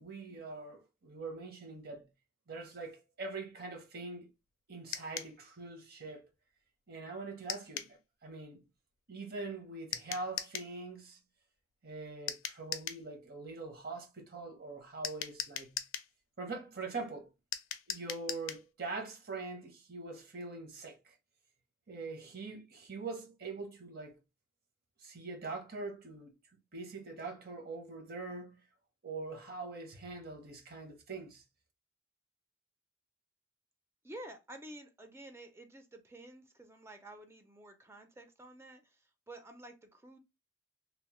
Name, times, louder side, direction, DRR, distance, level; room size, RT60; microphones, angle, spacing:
voice 1, 0.0-2.1 2.5-4.3 4.7-6.3 6.9-8.6 9.1-11.2 11.8-15.8 16.4-17.3 17.9-21.1 21.9-24.2 25.0-26.4 26.7-28.6 29.0-31.4, right 3 dB, 50° right, 0.8 m, -43 dB
sound 1, 4.9-5.3 7.5-7.9 9.9-10.7 12.3-13.0 15.0-16.1 17.5-18.7, left 10 dB, 85° left, 0.4 m, -39 dB
voice 2, 34.0-40.2, right 1 dB, 15° right, 0.4 m, -51 dB
2.8 x 2.0 x 3.0 m
head